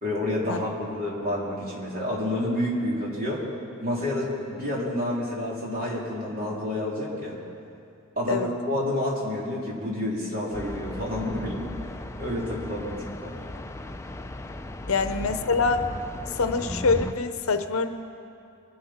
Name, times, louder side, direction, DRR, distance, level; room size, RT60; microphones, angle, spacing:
voice 1, 0.0-3.4 3.8-7.4 8.2-11.7 12.2-13.4, left 1 dB, 40° right, -5 dB, 3.2 m, -29 dB
sound 1, 10.5-17.1, left 1 dB, 15° left, 0.4 m, -36 dB
voice 2, 14.9-15.9 16.3-17.9, left 4 dB, 75° left, 9 dB, 0.7 m, -25 dB
22.5 x 10.5 x 4.3 m, 2.7 s
head